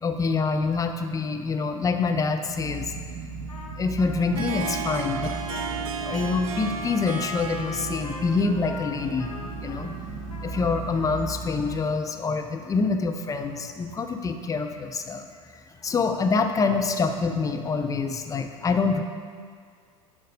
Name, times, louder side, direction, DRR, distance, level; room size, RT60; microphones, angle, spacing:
voice 1, 0.0-2.9 3.8-5.3 6.0-9.3 9.6-9.9 10.4-15.3 15.8-19.0, left 4 dB, 20° left, 5 dB, 0.6 m, -26 dB
sound 1, 2.4-11.8, right 3 dB, 45° right, 1.6 m, -37 dB
Trumpet, 3.5-11.7, left 3 dB, 85° left, 0.8 m, -41 dB
Harp, 4.1-11.8, right 6 dB, 75° right, 0.5 m, -36 dB
10.5 x 3.9 x 5.2 m, 2.1 s
figure-of-eight pair, 80°, 18 cm